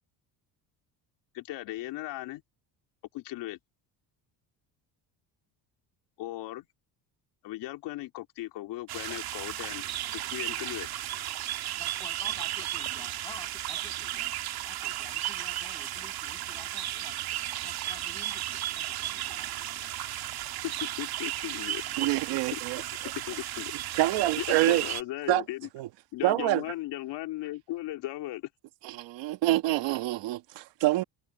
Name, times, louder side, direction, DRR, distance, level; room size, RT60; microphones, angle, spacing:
voice 1, 1.3-2.4 3.1-3.6 6.2-6.7 7.4-9.8 10.1-10.9 20.6-22.2 22.5-22.6 23.1-23.7 24.4-25.7 26.1-28.5, left 16 dB, 75° left, 3.7 m, -37 dB
sound 1, 8.9-25.0, right 13 dB, 60° right, 2.5 m, -34 dB
voice 2, 11.8-14.3 14.6-19.9 21.8-22.4, left 2 dB, 10° left, 8.0 m, -51 dB
voice 3, 22.0-22.8 24.0-24.8 25.3-25.4 25.8-25.9 26.2-26.6 28.9-31.0, right 16 dB, 80° right, 1.5 m, -26 dB
cardioid pair, 160°, 43 cm